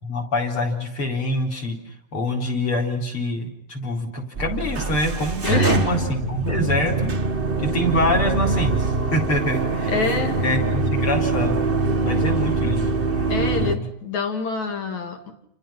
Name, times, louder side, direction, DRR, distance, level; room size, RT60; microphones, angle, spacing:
voice 1, 0.0-1.8 2.1-7.1 7.6-9.9 10.4-11.6 12.0-13.0 13.4-13.8, left 1 dB, 40° left, 1 dB, 4.8 m, -25 dB
sound 1, 4.4-13.8, right 3 dB, 75° right, 0.5 m, -23 dB
voice 2, 5.5-5.9 9.9-10.4 13.3-15.3, left 4 dB, 60° left, 5 dB, 4.1 m, -26 dB
30.0 x 28.5 x 5.9 m, 0.67 s
omnidirectional pair, 3.9 m